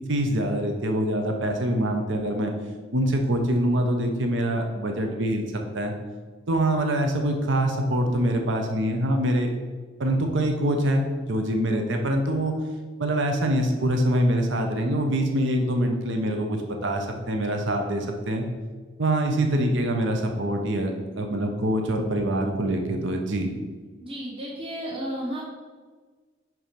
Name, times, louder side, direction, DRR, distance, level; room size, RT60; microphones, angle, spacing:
voice 1, 0.1-2.5 2.9-5.4 5.7-5.9 6.5-9.5 10.0-12.5 13.0-18.5 19.0-23.5, right 1 dB, 65° right, 3 dB, 0.9 m, -24 dB
voice 2, 24.0-25.4, equal, 25° right, -5 dB, 1.2 m, -32 dB
6.0 x 4.8 x 5.2 m, 1.4 s
head